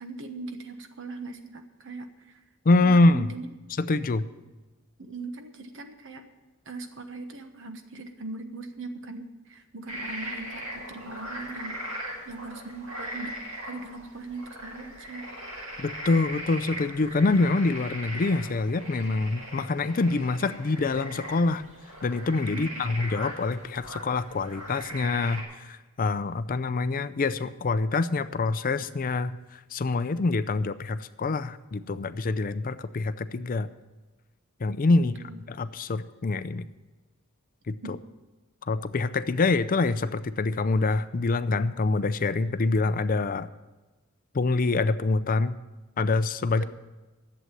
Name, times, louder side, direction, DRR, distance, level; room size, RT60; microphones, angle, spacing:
voice 1, 0.0-2.4 2.8-3.5 5.0-6.2 6.6-15.3 22.5-23.0 35.0-35.4 37.8-37.9 46.6-46.7, right 3 dB, 60° right, 7 dB, 1.2 m, -40 dB
voice 2, 2.6-3.3 3.9-4.3 15.8-21.6 22.0-33.7 34.6-35.1 35.5-36.7 37.7-37.8 38.6-43.5 44.3-45.6 46.0-46.6, left 3 dB, 40° left, 13 dB, 0.5 m, -25 dB
sound 1, 9.9-25.4, equal, 85° right, 5.6 m, -39 dB
11.0 x 7.8 x 9.0 m, 1.2 s
head